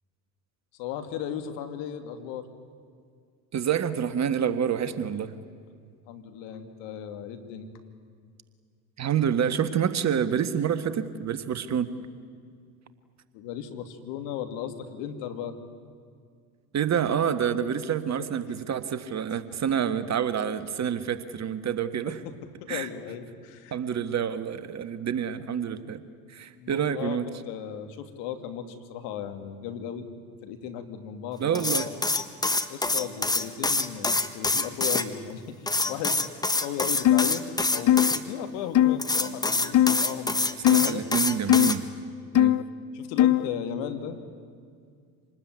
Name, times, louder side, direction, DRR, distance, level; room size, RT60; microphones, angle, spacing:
voice 1, 0.8-2.5 6.1-7.7 13.3-15.6 18.2-18.3 22.1-22.2 22.4-23.8 26.5-27.2 27.5-30.1 30.4-31.6 32.7-36.3 36.6-37.5 37.7-41.0 42.3-42.5 42.9-44.2, left 9 dB, 65° left, 7 dB, 2.6 m, -36 dB
voice 2, 3.5-5.3 9.0-11.9 16.7-22.2 22.7-22.9 23.7-26.0 26.3-27.2 31.4-31.9 40.7-41.9 42.3-42.6, right 8 dB, 35° right, 11 dB, 1.6 m, -28 dB
sound 1, 31.5-35.1 35.7-38.2 39.0-41.8, left 2 dB, 10° left, 1.5 m, -26 dB
sound 2, 37.0-37.3 37.9-38.1 38.7-39.0 39.7-40.0 40.6-40.9 41.5-41.7 42.3-42.6 43.2-43.5, left 13 dB, 40° left, 0.9 m, -19 dB
26.5 x 20.0 x 9.6 m, 2.1 s
hypercardioid pair, 75°, 46 cm